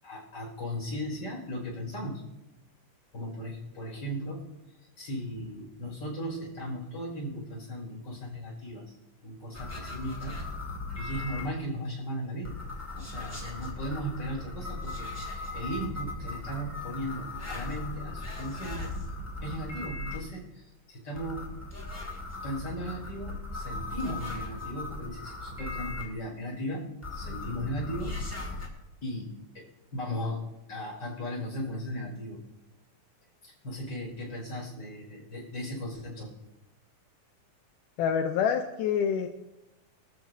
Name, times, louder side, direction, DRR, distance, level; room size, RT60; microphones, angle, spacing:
voice 1, 0.0-2.2 3.1-4.5 5.0-9.0 9.2-10.5 10.9-12.6 12.9-18.9 19.4-21.5 22.4-28.5 29.0-30.4 30.7-32.4 33.4-36.3, equal, 35° left, -3 dB, 6.2 m, -37 dB
sound 1, 9.5-11.5 12.4-20.2 21.2-26.0 27.0-28.7, left 2 dB, 5° left, 1.6 m, -38 dB
voice 2, 38.0-39.3, left 7 dB, 85° left, 5 dB, 2.3 m, -26 dB
24.0 x 13.5 x 2.8 m, 0.97 s
omnidirectional pair, 3.6 m